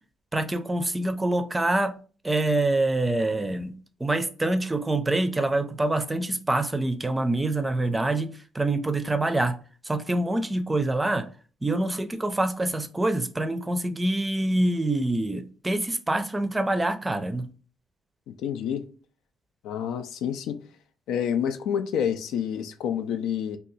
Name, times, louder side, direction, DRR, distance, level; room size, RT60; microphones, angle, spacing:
voice 1, 0.3-1.9 2.2-3.8 4.0-9.6 9.8-11.3 11.6-17.5, right 2 dB, 15° right, 0.4 m, -25 dB
voice 2, 18.3-18.8 19.6-20.6 21.1-23.6, left 8 dB, 85° left, 0.3 m, -28 dB
2.7 x 2.3 x 3.9 m
cardioid pair, 90°, 0 cm